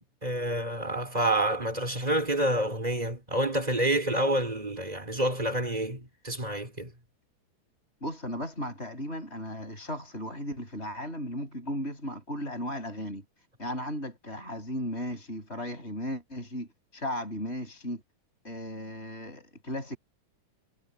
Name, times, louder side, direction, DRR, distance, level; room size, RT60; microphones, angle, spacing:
voice 1, 0.2-6.9, right 1 dB, 10° right, 4.5 m, -28 dB
voice 2, 8.0-13.2 13.6-18.0 18.4-20.0, equal, 20° left, 6.5 m, -36 dB
omnidirectional pair, 3.5 m